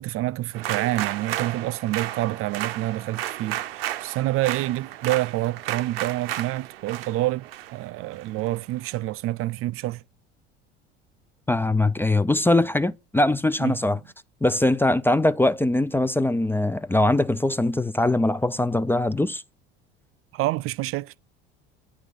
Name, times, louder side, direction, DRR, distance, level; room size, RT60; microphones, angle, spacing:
voice 1, 0.0-10.0 13.6-13.8 20.3-21.1, right 16 dB, 50° right, 0.4 m, -27 dB
sound 1, 0.5-8.9, right 13 dB, 80° right, 0.7 m, -33 dB
voice 2, 11.5-14.0 14.4-19.4, left 2 dB, 5° left, 0.4 m, -22 dB
9.8 x 3.7 x 6.3 m
hypercardioid pair, 75°, 29 cm